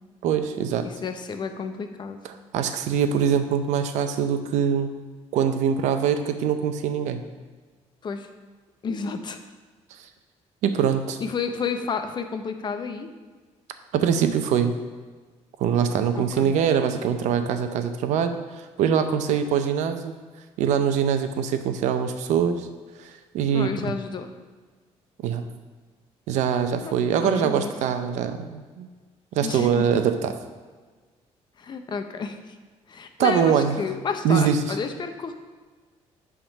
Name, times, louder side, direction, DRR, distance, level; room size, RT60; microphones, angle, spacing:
voice 1, 0.2-0.9 2.2-4.9 5.3-7.2 10.6-11.2 13.9-14.7 15.6-18.4 18.8-20.1 20.6-22.7 23.0-24.0 25.2-25.4 26.3-28.9 29.3-30.3 33.2-33.8 34.2-34.8, right 7 dB, 90° right, 8 dB, 0.6 m, -23 dB
voice 2, 0.8-2.2 8.0-8.3 8.8-9.4 11.2-13.1 16.2-16.5 23.5-24.3 26.8-27.7 29.4-30.0 31.6-32.4 32.9-35.3, left 5 dB, 40° left, 7 dB, 0.7 m, -31 dB
8.8 x 3.7 x 5.3 m, 1.4 s
cardioid pair, 125°, 12 cm